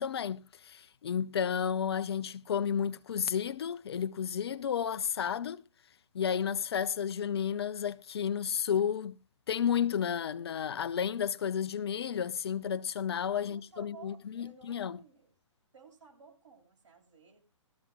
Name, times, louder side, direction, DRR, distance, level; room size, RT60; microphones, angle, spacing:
voice 1, 0.0-5.6 6.1-9.2 9.5-15.0, left 8 dB, 50° left, 0.7 m, -32 dB
voice 2, 13.4-15.3 15.7-17.4, right 6 dB, 70° right, 7.4 m, -55 dB
18.0 x 14.0 x 2.4 m
figure-of-eight pair, 135°, 16 cm